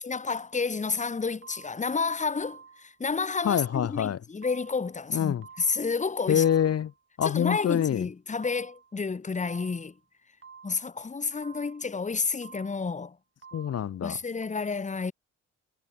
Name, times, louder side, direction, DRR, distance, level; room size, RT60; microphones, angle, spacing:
voice 1, 0.0-6.4 7.2-9.9 10.6-13.2 14.0-15.1, left 4 dB, 25° left, 1.7 m, -30 dB
sound 1, 0.7-1.0 1.4-2.0 2.4-3.0 3.4-4.0 4.4-5.0 5.4-6.0 6.4-7.0 7.4-8.0 8.4-9.0 9.4-10.0 10.4-11.0 11.4-12.0 12.4-13.0 13.4-14.0 14.4-14.5, right 6 dB, 40° right, 7.1 m, -51 dB
voice 2, 3.4-4.2 5.1-5.4 6.3-6.9 7.2-8.1 13.5-14.2, left 9 dB, 55° left, 1.5 m, -25 dB
cardioid pair, 90°, 30 cm